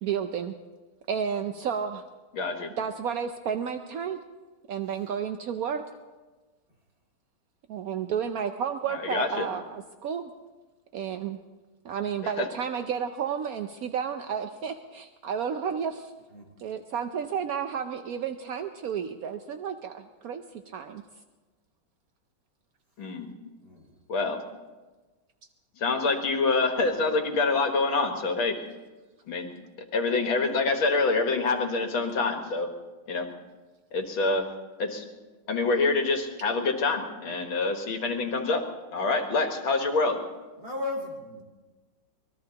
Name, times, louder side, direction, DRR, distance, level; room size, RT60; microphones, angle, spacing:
voice 1, 0.0-0.5 1.1-2.0 2.8-4.2 4.7-5.8 7.7-10.3 10.9-11.4 11.8-16.1 16.6-21.0, right 7 dB, 75° right, 7 dB, 0.8 m, -32 dB
voice 2, 2.3-2.7 8.9-9.5 12.4-12.5 23.0-23.3 24.1-24.4 25.8-28.6 29.3-29.5 29.9-32.7 33.1-33.3 33.9-34.5 34.8-35.0 35.5-38.6 38.9-40.2, left 3 dB, 75° left, 4 dB, 2.2 m, -26 dB
voice 3, 40.6-41.4, left 3 dB, 50° right, 0 dB, 4.1 m, -34 dB
24.0 x 20.0 x 2.9 m, 1.2 s
omnidirectional pair, 2.3 m